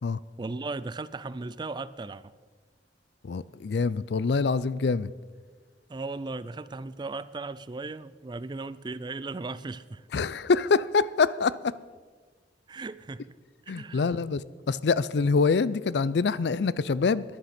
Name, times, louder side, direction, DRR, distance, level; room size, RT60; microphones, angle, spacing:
voice 1, 0.4-2.2 5.9-10.1 12.7-13.3 13.7-14.2, right 3 dB, 25° right, 0.4 m, -37 dB
voice 2, 3.2-5.1 10.1-11.7 13.7-14.4 14.7-17.2, left 4 dB, 65° left, 0.4 m, -25 dB
13.5 x 10.5 x 5.9 m
head